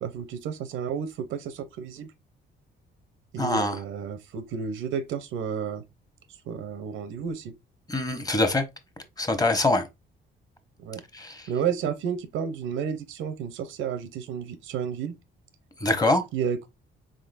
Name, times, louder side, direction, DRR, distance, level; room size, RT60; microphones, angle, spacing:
voice 1, 0.0-2.1 3.3-5.8 6.5-7.5 10.8-11.0 11.5-15.1 16.3-16.7, right 7 dB, 90° right, 0.7 m, -31 dB
voice 2, 3.4-3.8 7.9-8.6 9.2-9.8 11.1-11.4 15.8-16.2, left 2 dB, 20° left, 0.9 m, -24 dB
3.9 x 3.7 x 2.5 m
cardioid pair, 90°, 20 cm